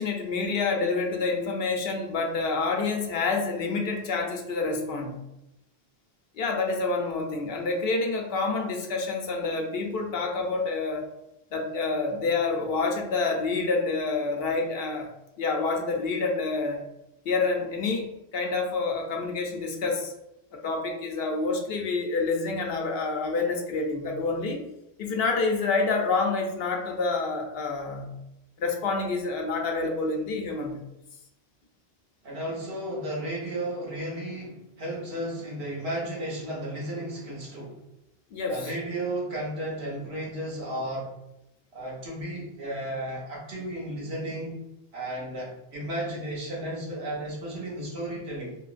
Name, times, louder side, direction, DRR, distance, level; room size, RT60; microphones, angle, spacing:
voice 1, 0.0-5.2 6.4-11.1 11.5-15.1 15.4-16.8 17.3-20.1 20.6-24.6 25.0-28.1 28.6-30.8 38.3-38.7, left 3 dB, 70° left, 2 dB, 0.8 m, -28 dB
voice 2, 32.2-37.8 38.5-41.1 41.7-44.6 44.9-48.6, right 1 dB, 80° right, -3 dB, 1.2 m, -34 dB
3.0 x 2.8 x 2.4 m, 0.88 s
omnidirectional pair, 1.0 m